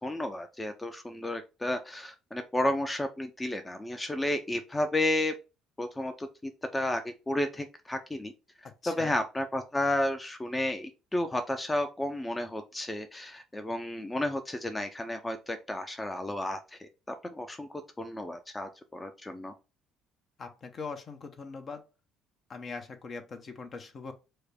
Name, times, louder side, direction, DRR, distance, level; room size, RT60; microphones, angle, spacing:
voice 1, 0.0-5.3 5.8-8.3 8.6-19.5, left 1 dB, 15° left, 0.6 m, -32 dB
voice 2, 8.8-9.1 20.4-21.9 22.5-24.1, left 4 dB, 45° left, 0.9 m, -41 dB
4.8 x 2.2 x 4.3 m
hypercardioid pair, 55°, 0 cm